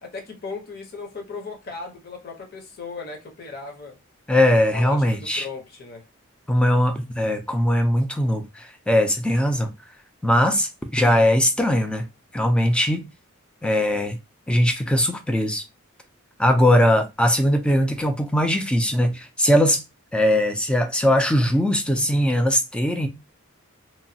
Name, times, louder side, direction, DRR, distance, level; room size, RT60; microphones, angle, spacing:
voice 1, 0.0-4.0 4.7-6.0, left 4 dB, 45° left, 0.8 m, -37 dB
voice 2, 4.3-5.5 6.5-9.7 10.2-12.1 12.3-13.0 13.6-14.2 14.5-15.6 16.4-19.8 20.1-23.1, left 1 dB, 5° left, 0.3 m, -20 dB
3.0 x 2.2 x 2.7 m
head